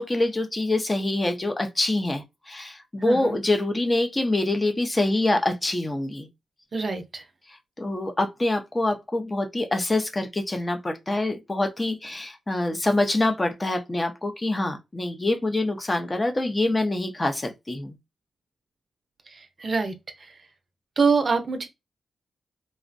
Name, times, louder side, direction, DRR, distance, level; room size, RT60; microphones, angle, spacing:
voice 1, 0.0-6.3 7.5-17.9, left 2 dB, 25° left, 0.5 m, -25 dB
voice 2, 3.0-3.4 6.7-7.2 19.3-20.3 21.0-21.7, right 4 dB, 50° right, 0.5 m, -25 dB
2.5 x 2.0 x 2.5 m
cardioid pair, 65°, 0 cm